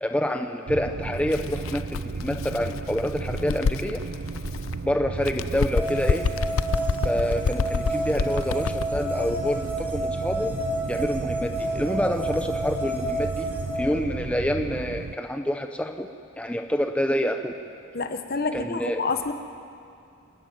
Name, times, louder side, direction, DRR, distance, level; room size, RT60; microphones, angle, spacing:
voice 1, 0.0-4.0 4.8-6.3 7.0-10.6 10.9-13.5 13.7-16.1 16.4-17.5 18.5-19.0, equal, 5° left, 5 dB, 0.7 m, -27 dB
sound 1, 0.7-15.2, right 4 dB, 50° right, 0.4 m, -34 dB
Bird, 1.2-4.8 5.2-9.0, left 5 dB, 75° left, 0.4 m, -28 dB
sound 2, 5.7-13.8, right 1 dB, 10° right, 2.5 m, -30 dB
voice 2, 17.9-19.3, left 4 dB, 45° left, 8 dB, 1.1 m, -28 dB
29.5 x 12.5 x 9.2 m, 2.4 s
head